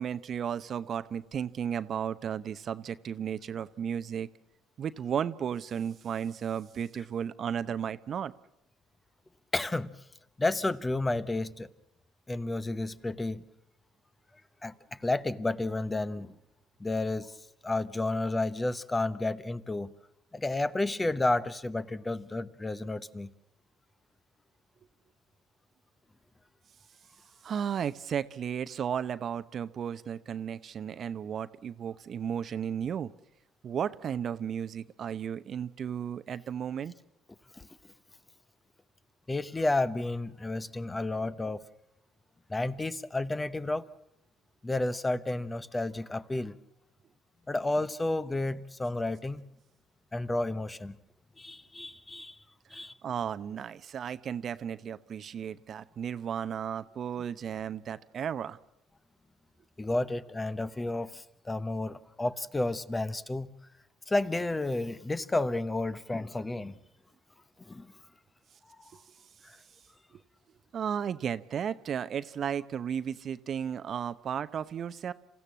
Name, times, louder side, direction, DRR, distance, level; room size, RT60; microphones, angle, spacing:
voice 1, 0.0-4.3 4.8-8.3 27.4-33.1 33.6-36.9 52.7-58.6 70.7-75.1, right 8 dB, 50° right, 14 dB, 0.8 m, -34 dB
voice 2, 9.5-9.9 10.4-11.7 12.3-13.4 14.6-16.3 16.8-17.4 17.6-19.9 20.3-23.3 37.5-37.7 39.3-41.6 42.5-43.9 44.6-46.6 47.5-49.5 50.1-51.0 51.4-52.4 52.7-52.9 59.8-63.5 64.1-66.7 67.6-67.9 68.7-68.8 69.4-69.6, left 2 dB, 20° left, 14 dB, 1.0 m, -31 dB
27.5 x 15.0 x 7.4 m, 0.83 s
hypercardioid pair, 60°, 0 cm